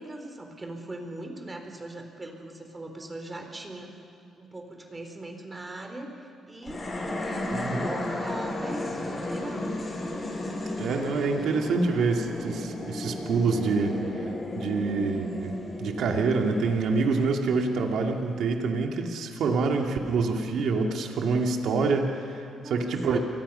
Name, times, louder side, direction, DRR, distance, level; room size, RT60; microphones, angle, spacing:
voice 1, 0.0-4.0 4.4-6.8 7.2-9.7 22.5-23.2, right 2 dB, 20° right, 4 dB, 4.1 m, -40 dB
sound 1, 6.6-18.0, left 2 dB, 30° left, 6.6 m, -34 dB
voice 2, 7.5-7.9 10.8-14.0 14.6-23.2, right 4 dB, 70° right, 2 dB, 2.6 m, -26 dB
29.5 x 23.0 x 5.7 m, 2.4 s
cardioid pair, 90°, 0 cm